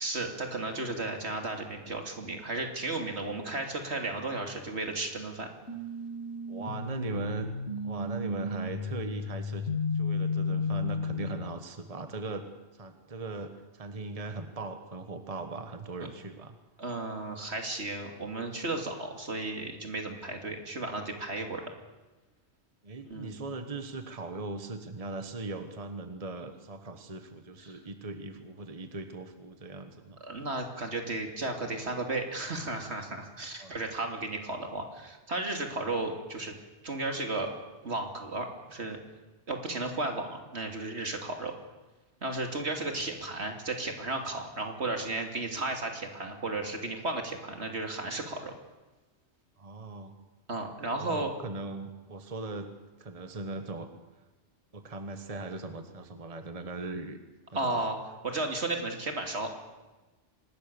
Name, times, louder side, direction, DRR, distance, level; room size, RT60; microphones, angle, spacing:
voice 1, 0.0-5.5 16.8-21.6 23.1-23.4 27.6-27.8 30.2-36.6 36.8-37.5 37.8-39.0 39.5-41.5 42.2-48.5 50.5-51.3 57.5-58.0 58.2-59.5, right 2 dB, 70° right, 4 dB, 3.1 m, -34 dB
sound 1, 5.7-11.6, left 3 dB, 80° left, 2.2 m, -33 dB
voice 2, 6.5-7.5 7.8-9.7 9.9-12.5 12.7-16.6 22.8-30.2 33.5-33.8 49.6-50.1 51.0-52.7 53.0-53.9 54.7-57.2 57.5-57.7, right 3 dB, 30° right, 8 dB, 1.4 m, -39 dB
25.0 x 19.5 x 7.0 m, 1.2 s
omnidirectional pair, 1.2 m